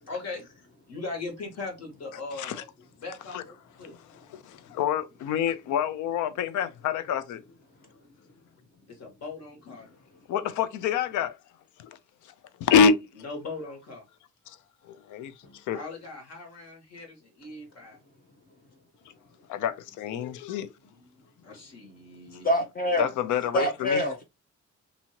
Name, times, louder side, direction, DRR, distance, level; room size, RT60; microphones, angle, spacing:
voice 1, 0.1-2.7 3.0-4.0 8.9-9.9 13.2-14.0 15.7-18.0 21.4-22.5, left 3 dB, 55° left, 1.7 m, -39 dB
voice 2, 4.1-7.4 10.3-11.4 11.8-11.9 12.2-12.3 12.6-13.0 14.5-14.6 14.8-15.8 19.5-20.7 22.3-22.4 23.0-24.0, left 7 dB, 80° left, 0.5 m, -27 dB
voice 3, 22.4-23.1 23.5-24.2, equal, 30° left, 0.7 m, -25 dB
2.7 x 2.7 x 2.8 m
cardioid pair, 90°, 30 cm